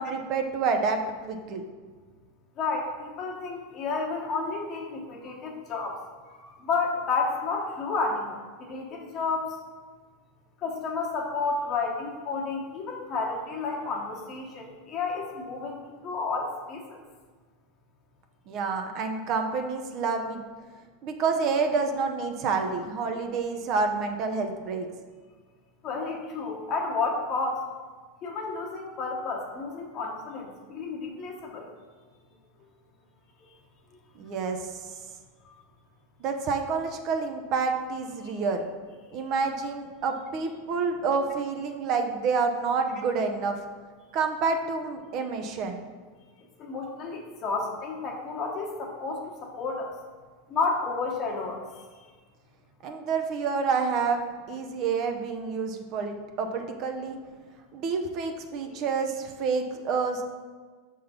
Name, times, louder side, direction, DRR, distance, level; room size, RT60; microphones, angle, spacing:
voice 1, 0.0-1.6 18.5-20.4 21.0-24.9 34.2-34.8 36.2-38.6 39.1-43.6 44.1-45.9 52.8-57.2 57.7-60.2, right 4 dB, 50° right, 5 dB, 0.8 m, -28 dB
voice 2, 2.6-6.0 6.3-9.6 10.6-17.0 25.8-27.7 28.2-31.7 38.2-38.4 46.6-50.0 50.5-51.6 58.6-58.7, left 4 dB, 45° left, 0 dB, 1.2 m, -31 dB
5.7 x 3.9 x 5.2 m, 1.5 s
hypercardioid pair, 105°, 0 cm